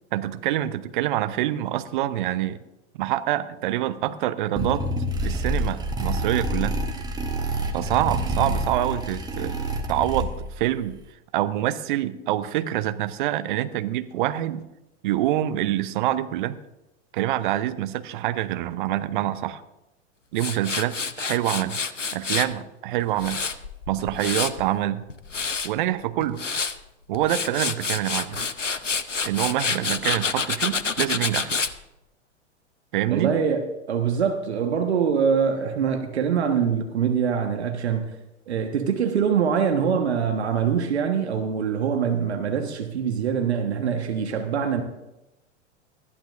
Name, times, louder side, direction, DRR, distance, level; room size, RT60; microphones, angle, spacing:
voice 1, 0.1-2.6 2.9-4.8 5.2-6.8 7.7-9.5 9.9-11.0 11.3-14.6 15.0-16.6 17.1-19.6 20.3-21.8 22.1-23.4 23.9-25.0 25.6-26.4 27.1-28.4 29.2-31.5 32.9-33.3, right 13 dB, 45° right, 0.9 m, -26 dB
sound 1, 4.6-10.6, right 1 dB, 10° right, 1.4 m, -27 dB
Tools, 20.4-22.5 23.0-24.7 25.1-25.7 26.2-26.8 27.1-31.7, left 5 dB, 85° left, 0.8 m, -28 dB
voice 2, 33.1-38.1 38.5-44.8, right 7 dB, 65° right, 1.4 m, -24 dB
20.5 x 13.5 x 2.6 m
figure-of-eight pair, 95°, 36 cm